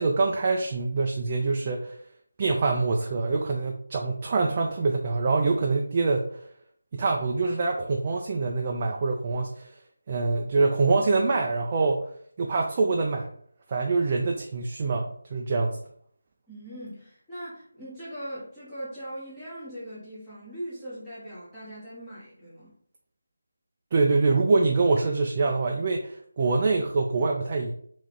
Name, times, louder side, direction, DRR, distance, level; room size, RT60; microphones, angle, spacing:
voice 1, 0.0-2.0 2.4-6.4 6.9-9.7 10.1-12.0 12.4-13.3 13.7-15.8 23.9-27.7, right 3 dB, 30° right, 1 dB, 0.4 m, -25 dB
voice 2, 16.5-22.7, equal, 10° left, -11 dB, 1.1 m, -40 dB
3.5 x 3.0 x 3.3 m, 0.63 s
figure-of-eight pair, 165°, 0 cm